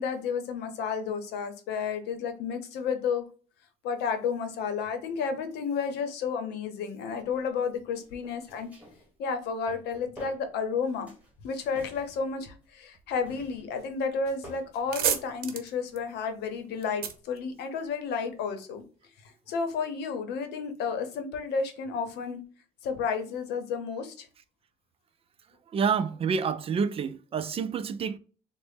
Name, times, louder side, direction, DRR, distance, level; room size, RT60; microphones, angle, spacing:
voice 1, 0.0-3.2 3.8-8.7 9.2-11.1 11.4-18.8 19.2-22.4 22.8-24.3, left 5 dB, 80° left, 0.8 m, -32 dB
sound 1, 7.1-7.5 7.9-9.1 9.5-10.8 11.1-12.7 13.1-14.7, equal, 10° right, 1.4 m, -50 dB
sound 2, 14.2-14.3 14.6-18.2, right 8 dB, 60° right, 0.7 m, -33 dB
voice 2, 25.7-28.2, right 6 dB, 35° right, 0.4 m, -28 dB
3.7 x 2.1 x 3.4 m
cardioid pair, 110°, 17 cm